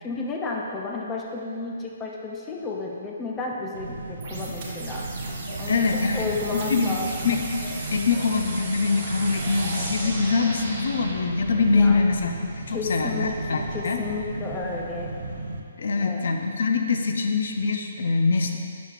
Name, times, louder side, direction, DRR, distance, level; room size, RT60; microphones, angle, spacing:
voice 1, 0.0-5.1 5.6-7.3 11.7-12.1 12.7-13.4 13.7-15.1 16.0-16.2, left 3 dB, 15° left, -1 dB, 0.4 m, -32 dB
sound 1, 3.7-15.6, right 2 dB, 80° right, 0.6 m, -36 dB
sound 2, 4.2-11.2, right 2 dB, 35° right, 1.4 m, -36 dB
Speech / Cough, 5.1-7.3 7.6-8.4 9.3-10.6 11.5-13.8, left 1 dB, 85° left, 1.6 m, -42 dB
voice 2, 5.7-6.9 7.2-7.4 7.9-12.3 12.7-14.0 15.8-18.6, left 4 dB, 70° left, 4 dB, 0.6 m, -24 dB
8.0 x 6.1 x 2.4 m, 2.4 s
hypercardioid pair, 160°, 0 cm